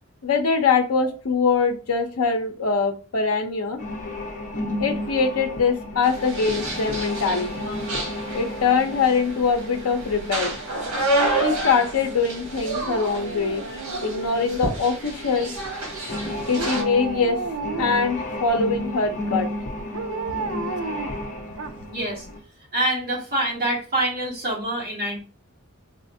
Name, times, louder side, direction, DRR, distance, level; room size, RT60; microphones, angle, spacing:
voice 1, 0.2-3.8 4.8-7.5 8.3-10.6 11.4-13.6 14.0-15.5 16.5-17.4 17.8-19.5, left 5 dB, 80° left, 6 dB, 0.5 m, -23 dB
sound 1, 3.8-22.4, left 1 dB, 35° left, 0.8 m, -34 dB
sound 2, 6.0-16.8, right 2 dB, 80° right, 1.4 m, -30 dB
Dog, 12.8-14.8 16.5-18.2 19.9-22.0 22.4-22.5, right 4 dB, 65° right, 0.4 m, -33 dB
voice 2, 21.9-22.3 22.7-25.2, right 1 dB, 40° right, -4 dB, 1.7 m, -25 dB
4.1 x 2.5 x 2.6 m, 0.36 s
head